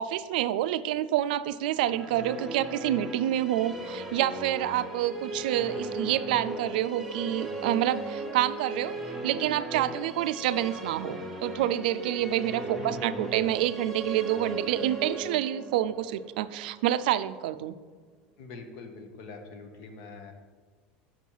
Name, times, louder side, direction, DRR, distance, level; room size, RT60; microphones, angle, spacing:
voice 1, 0.0-9.0 9.2-17.8, right 12 dB, 80° right, 14 dB, 0.3 m, -28 dB
Musical instrument, 1.7-17.1, right 2 dB, 5° left, 1.0 m, -38 dB
voice 2, 12.7-13.5 18.4-20.3, left 3 dB, 65° left, 5 dB, 1.1 m, -44 dB
6.1 x 5.5 x 4.6 m, 1.5 s
supercardioid pair, 135°, 5 cm